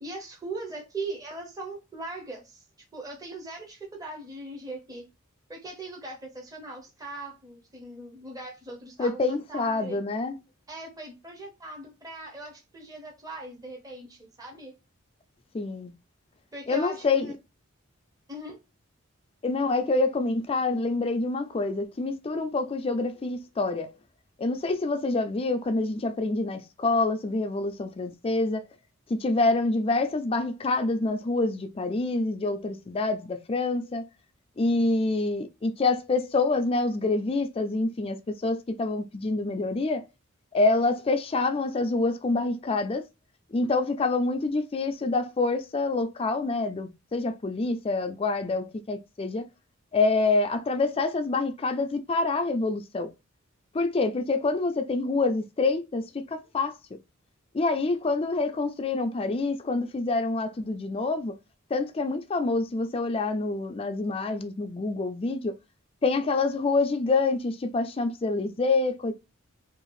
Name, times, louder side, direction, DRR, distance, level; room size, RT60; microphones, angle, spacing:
voice 1, 0.0-2.6 2.9-5.0 5.5-10.0 10.7-14.7 16.5-17.3 18.3-18.6, right 2 dB, 15° right, 0.8 m, -40 dB
voice 2, 9.0-10.4 15.5-15.9 16.7-17.3 19.4-23.9 24.4-28.6 29.1-34.0 34.6-40.0 40.5-43.0 43.5-49.5 49.9-53.1 53.7-56.8 57.5-61.4 61.7-65.5 66.0-69.1, left 3 dB, 25° left, 0.4 m, -26 dB
2.7 x 2.4 x 3.0 m
head